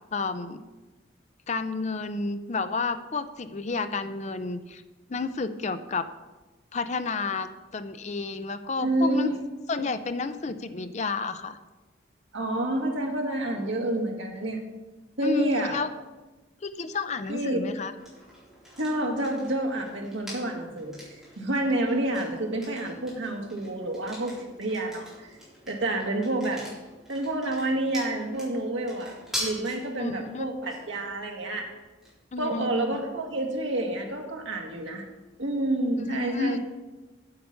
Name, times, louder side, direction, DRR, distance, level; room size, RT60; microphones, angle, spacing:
voice 1, 0.1-0.6 1.5-4.8 5.1-6.0 6.7-9.3 9.7-11.6 15.2-15.9 16.6-17.9 30.0-30.5 32.3-33.1 36.0-36.6, left 4 dB, 35° left, 11 dB, 0.5 m, -31 dB
voice 2, 8.8-9.4 9.8-9.9 12.3-14.6 15.2-15.8 17.3-17.7 18.8-21.0 21.4-25.4 25.7-26.6 27.1-31.7 32.4-35.1 35.4-36.6, right 1 dB, 80° right, 1 dB, 1.7 m, -29 dB
sound 1, 18.0-35.7, equal, ahead, 4.1 m, -44 dB
8.7 x 8.0 x 5.6 m, 1.2 s
head